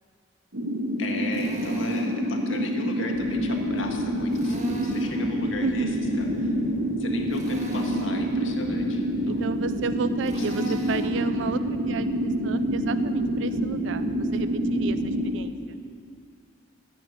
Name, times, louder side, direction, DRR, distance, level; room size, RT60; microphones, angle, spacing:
sound 1, 0.5-15.4, equal, 85° right, 1.5 m, -27 dB
voice 1, 1.0-5.9 6.2-6.5 7.0-9.4 10.3-10.7, left 2 dB, 75° left, 2 dB, 1.8 m, -37 dB
Drill, 1.3-2.2 4.3-5.2 7.3-8.2 10.2-11.2, right 1 dB, 35° right, 1.6 m, -42 dB
sound 2, 3.1-15.3, equal, 25° left, 1.8 m, -39 dB
voice 2, 5.4-5.9 9.2-15.5, right 6 dB, 65° right, 12 dB, 0.4 m, -33 dB
14.5 x 9.6 x 8.0 m, 2.3 s
head